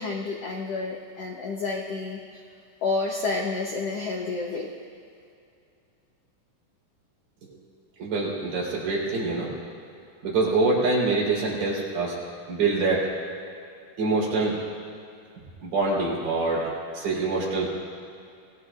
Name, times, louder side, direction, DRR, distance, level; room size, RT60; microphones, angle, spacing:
voice 1, 0.0-2.4 2.8-4.7, left 3 dB, 75° left, 0 dB, 1.4 m, -30 dB
voice 2, 8.0-9.6 10.2-12.2 12.5-13.1 14.0-14.6 15.6-16.7 16.9-17.7, right 3 dB, 70° right, -5 dB, 5.4 m, -25 dB
27.0 x 18.0 x 2.5 m, 2.5 s
omnidirectional pair, 4.1 m